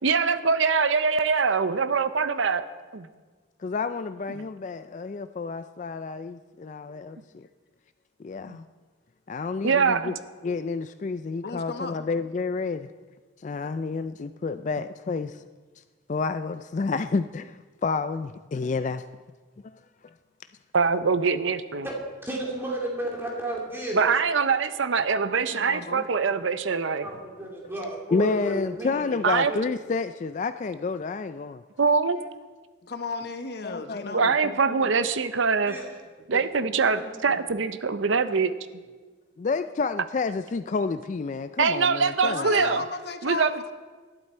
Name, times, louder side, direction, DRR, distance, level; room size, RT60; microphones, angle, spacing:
voice 1, 0.0-2.6 2.9-3.1 8.5-8.6 9.6-10.1 20.7-21.9 23.9-27.1 29.2-29.5 31.8-32.2 34.1-35.8 36.3-38.6 41.6-42.8 43.2-43.5, right 5 dB, 80° right, 12 dB, 0.7 m, -23 dB
voice 2, 3.6-7.5 8.2-8.6 9.3-10.1 10.4-12.9 13.4-15.4 16.1-19.0 19.6-19.8 28.1-31.6 33.6-34.5 39.4-42.7, left 4 dB, 40° left, 11 dB, 0.3 m, -30 dB
voice 3, 11.4-11.9 25.5-26.0 32.9-34.3 42.2-43.7, left 4 dB, 55° left, 7 dB, 1.0 m, -34 dB
voice 4, 22.2-24.0 27.0-29.2 29.5-29.6 35.7-35.8 36.3-36.4 37.0-37.5, right 1 dB, 10° right, -2 dB, 2.6 m, -33 dB
18.5 x 12.0 x 4.4 m, 1.4 s
head